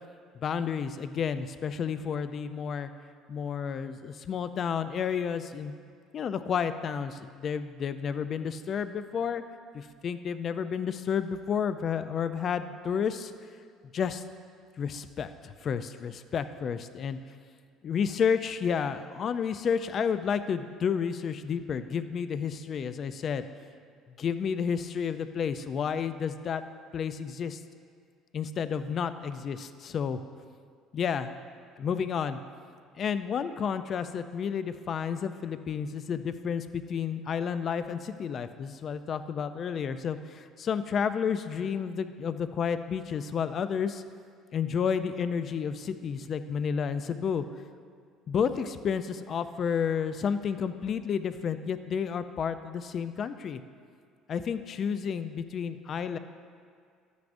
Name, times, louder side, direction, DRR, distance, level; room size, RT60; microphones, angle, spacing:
voice 1, 0.3-2.9 3.3-5.8 6.1-9.4 9.7-13.3 13.9-14.2 14.8-17.2 17.8-23.4 24.2-26.6 26.9-27.6 28.3-30.2 30.9-31.4 31.8-32.4 33.0-44.0 44.5-47.4 48.3-53.6 54.3-56.2, left 7 dB, 40° left, 11 dB, 0.4 m, -31 dB
13.0 x 9.4 x 2.6 m, 2.2 s
cardioid pair, 130°, 0 cm